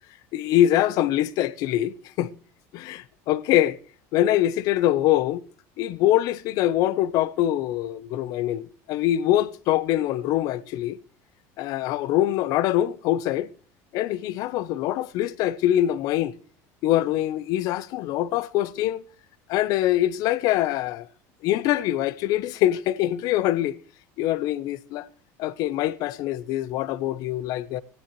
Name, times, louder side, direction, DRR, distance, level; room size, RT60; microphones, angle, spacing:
voice 1, 0.3-2.3 2.7-3.8 4.1-5.4 5.8-11.0 11.6-13.5 13.9-16.3 16.8-19.0 19.5-21.1 21.4-23.8 24.2-25.1 25.4-27.8, left 13 dB, 55° left, 0.7 m, -24 dB
16.0 x 15.5 x 3.1 m
cardioid pair, 150°, 7 cm